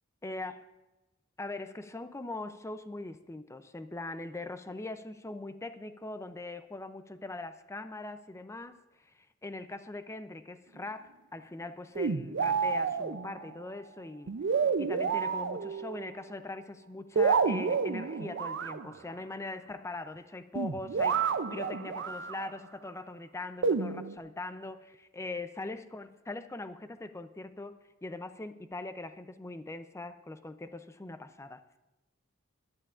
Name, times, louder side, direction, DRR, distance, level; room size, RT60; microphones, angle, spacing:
voice 1, 0.2-0.6 1.4-8.8 9.4-14.3 14.8-31.6, left 2 dB, 15° left, 11 dB, 0.5 m, -41 dB
sound 1, 12.0-13.5 14.3-16.1 17.2-18.9 20.6-22.5 23.6-24.2, right 5 dB, 60° right, 0.5 m, -30 dB
20.5 x 11.5 x 2.5 m, 1.0 s
head